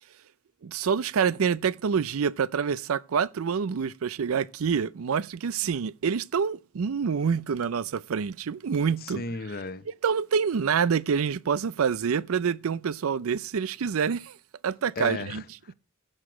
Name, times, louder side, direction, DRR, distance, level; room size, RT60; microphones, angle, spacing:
voice 1, 0.6-9.2 10.0-14.4 14.6-15.4, right 6 dB, 80° right, 0.5 m, -27 dB
voice 2, 9.0-9.9 15.0-15.7, left 3 dB, 45° left, 0.7 m, -35 dB
15.0 x 6.5 x 4.9 m
head